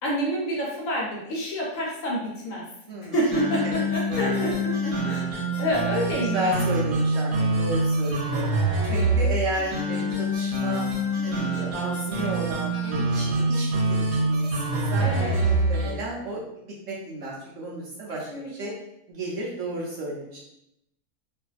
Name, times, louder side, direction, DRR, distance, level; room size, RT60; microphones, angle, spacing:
voice 1, 0.0-2.7 3.0-6.9 8.3-8.4 15.0-15.3 18.3-18.7, equal, 65° left, -4 dB, 0.9 m, -28 dB
sound 1, 3.1-16.0, right 1 dB, 90° right, 1.2 m, -25 dB
voice 2, 4.1-4.6 6.2-8.4 8.8-10.8 11.2-18.7 19.1-20.4, right 1 dB, 65° right, -5 dB, 0.9 m, -33 dB
2.5 x 2.5 x 2.3 m, 0.80 s
omnidirectional pair, 1.7 m